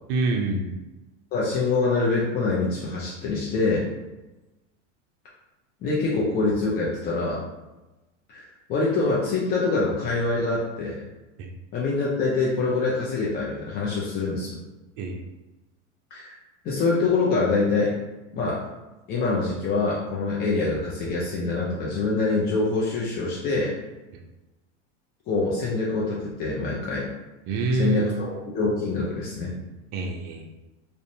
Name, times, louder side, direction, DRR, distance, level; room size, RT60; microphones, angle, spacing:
voice 1, 0.1-0.8 11.4-11.5 15.0-15.2 27.5-28.2 29.9-30.5, right 3 dB, 55° right, 2 dB, 0.5 m, -26 dB
voice 2, 1.3-3.9 5.8-7.4 8.3-11.0 11.7-14.6 16.1-16.3 16.6-18.0 18.3-18.6 19.1-23.8 25.3-27.1 27.7-29.5, left 3 dB, 30° left, -5 dB, 0.4 m, -25 dB
2.5 x 2.1 x 2.6 m, 1.1 s
supercardioid pair, 110°, 36 cm